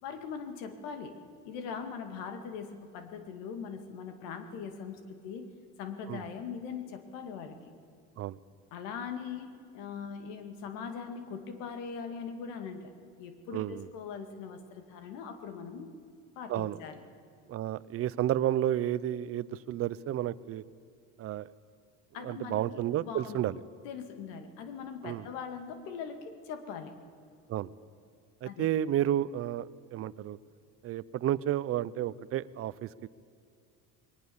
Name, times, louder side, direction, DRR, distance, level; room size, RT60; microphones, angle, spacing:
voice 1, 0.0-5.5 5.8-7.7 8.7-12.9 13.2-16.0 16.4-17.0 22.1-22.6 23.1-23.4 23.8-27.0 28.5-28.7, left 6 dB, 85° left, 7 dB, 2.2 m, -41 dB
voice 2, 13.5-13.9 16.5-16.8 17.5-20.6 21.2-21.5 22.2-23.6 25.0-25.2 27.5-27.7 28.4-30.4 30.8-33.1, right 12 dB, 45° right, 17 dB, 0.7 m, -31 dB
21.5 x 19.0 x 7.0 m, 2.4 s
cardioid pair, 120°, 33 cm